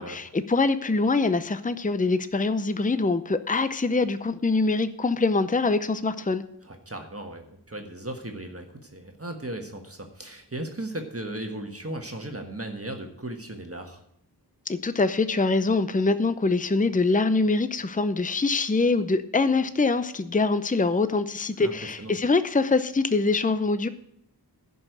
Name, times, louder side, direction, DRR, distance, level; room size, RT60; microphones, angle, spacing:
voice 1, 0.0-6.4 14.7-23.9, left 3 dB, 20° left, 12 dB, 0.6 m, -24 dB
voice 2, 6.6-14.0 21.6-21.7 22.0-22.1, right 1 dB, 35° right, 3 dB, 1.5 m, -36 dB
11.0 x 5.5 x 7.9 m, 0.72 s
wide cardioid pair, 45°, 40 cm